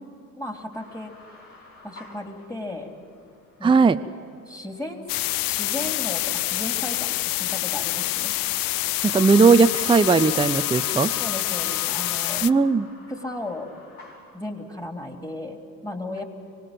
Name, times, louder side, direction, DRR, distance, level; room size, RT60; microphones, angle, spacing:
voice 1, 0.4-1.1 1.8-2.9 3.6-3.7 4.5-5.0 5.5-8.3 11.2-12.5 13.1-13.7 14.3-16.2, left 1 dB, 10° left, 4 dB, 3.5 m, -35 dB
sound 1, 0.7-14.4, left 2 dB, 75° left, 5.7 m, -44 dB
voice 2, 3.6-4.0 9.0-11.1 12.4-12.9, right 4 dB, 10° right, 9 dB, 0.6 m, -18 dB
sound 2, 5.1-12.5, left 18 dB, 55° left, 0.6 m, -26 dB
25.0 x 19.0 x 7.7 m, 2.5 s
hypercardioid pair, 55°, 41 cm